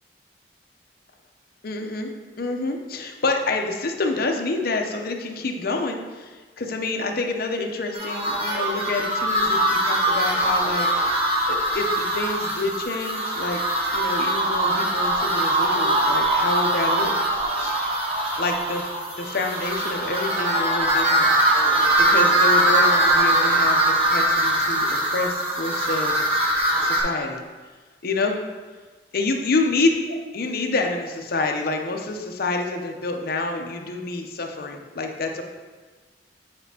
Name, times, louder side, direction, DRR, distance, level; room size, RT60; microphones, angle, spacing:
voice 1, 1.6-2.1 2.4-13.6 13.9-17.1 17.6-17.8 18.4-18.9 19.2-21.4 22.0-26.2 26.8-27.4 28.0-28.4 29.1-35.4, left 3 dB, 60° left, 3 dB, 0.7 m, -27 dB
sound 1, 7.9-27.0, right 1 dB, 35° right, 1.1 m, -22 dB
7.8 x 5.1 x 2.8 m, 1.4 s
head